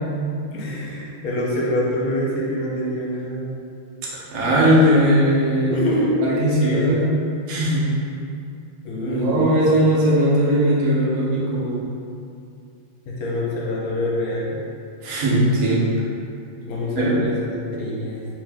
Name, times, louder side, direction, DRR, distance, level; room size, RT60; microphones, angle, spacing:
voice 1, 0.5-3.5 5.7-6.2 6.6-7.0 8.8-9.6 13.1-14.6 16.5-17.4 17.7-18.3, left 1 dB, 60° left, -4 dB, 1.0 m, -25 dB
voice 2, 4.3-5.8 6.2-7.1 7.5-7.8 9.1-11.8 15.0-15.8 17.0-17.2, right 1 dB, 60° right, -7 dB, 1.2 m, -18 dB
3.7 x 2.9 x 3.4 m, 2.5 s
omnidirectional pair, 2.0 m